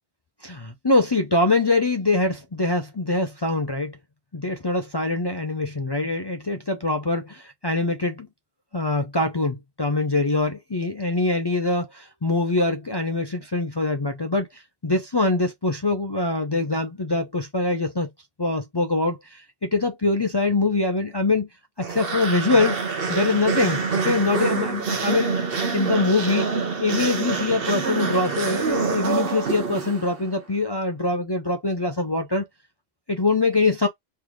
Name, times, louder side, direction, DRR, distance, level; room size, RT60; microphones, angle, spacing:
voice 1, 0.4-4.0 4.3-8.3 8.7-18.1 18.4-21.5 21.8-22.8 23.1-25.3 25.7-32.5 33.1-33.9, left 3 dB, 30° left, 0.5 m, -23 dB
sound 1, 21.8-30.3, right 5 dB, 60° right, 1.0 m, -26 dB
3.4 x 3.1 x 3.6 m
omnidirectional pair, 1.1 m